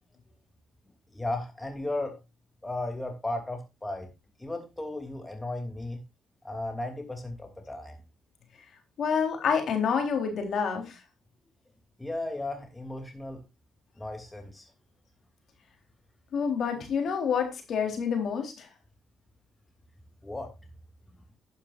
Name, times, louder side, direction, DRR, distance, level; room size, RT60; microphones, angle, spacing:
voice 1, 1.1-2.2 2.6-4.1 4.4-6.0 6.4-8.0 12.0-13.4 14.0-14.7 20.2-20.5, left 2 dB, 15° left, 4 dB, 2.9 m, -35 dB
voice 2, 9.0-10.8 16.3-18.7, left 6 dB, 60° left, 4 dB, 3.8 m, -28 dB
12.0 x 10.5 x 2.6 m, 0.25 s
cardioid pair, 90°, 0 cm